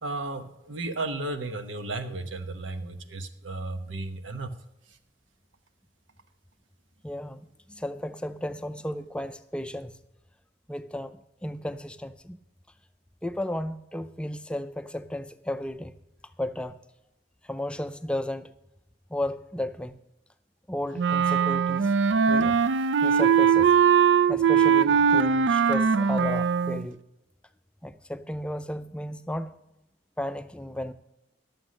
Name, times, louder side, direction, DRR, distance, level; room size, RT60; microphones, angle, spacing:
voice 1, 0.0-4.5, right 2 dB, 90° right, 8 dB, 1.0 m, -34 dB
voice 2, 7.0-7.4 7.7-9.9 10.7-12.4 13.2-16.0 16.4-16.8 17.4-18.5 19.1-20.0 20.7-21.9 22.3-22.6 23.0-23.7 24.3-27.0 27.8-29.5 30.2-30.9, left 1 dB, 5° left, 10 dB, 0.4 m, -34 dB
Wind instrument woodwind instrument, 21.0-26.9, right 7 dB, 70° right, 0.4 m, -21 dB
11.5 x 7.0 x 6.3 m, 0.91 s
head